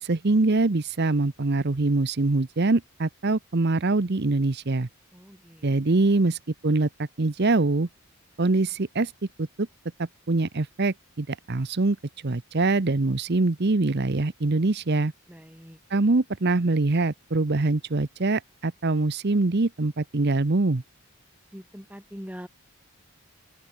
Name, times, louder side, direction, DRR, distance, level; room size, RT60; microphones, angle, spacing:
voice 1, 0.0-4.9 5.6-7.9 8.4-9.1 9.4-9.7 10.0-15.1 15.9-20.8, right 2 dB, 50° right, 0.8 m, -24 dB
voice 2, 5.1-5.7 15.3-15.8 21.5-22.5, equal, 5° right, 5.8 m, -43 dB
open air
head